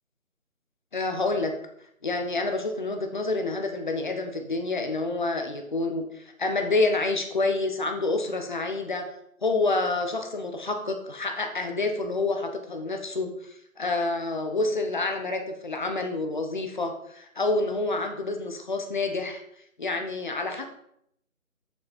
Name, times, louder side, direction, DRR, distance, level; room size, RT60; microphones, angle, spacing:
voice 1, 0.9-1.5 2.0-9.1 9.4-19.4 19.8-20.7, left 3 dB, 35° left, 5 dB, 1.1 m, -28 dB
8.2 x 7.2 x 4.3 m, 0.71 s
figure-of-eight pair, 165°, 42 cm